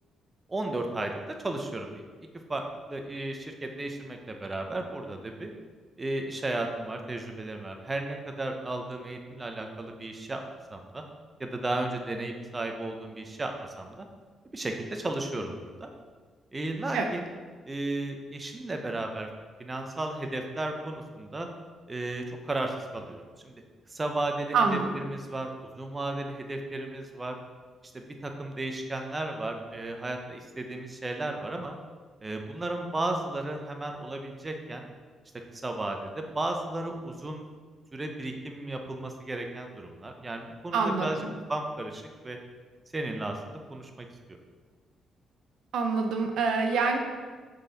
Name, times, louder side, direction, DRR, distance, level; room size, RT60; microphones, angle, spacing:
voice 1, 0.5-1.9 2.5-5.5 6.0-10.4 10.7-11.0 11.4-14.1 14.5-15.9 16.5-17.3 17.7-19.3 19.6-21.5 21.9-23.5 23.9-27.3 27.9-31.7 32.2-34.9 35.5-37.5 37.9-41.2 41.5-42.4 42.9-44.1, right 2 dB, 25° right, 4 dB, 0.7 m, -34 dB
voice 2, 24.5-24.9 40.7-41.3 45.7-47.0, right 4 dB, 75° right, 4 dB, 0.7 m, -26 dB
6.3 x 4.2 x 4.0 m, 1.5 s
cardioid pair, 90°, 0 cm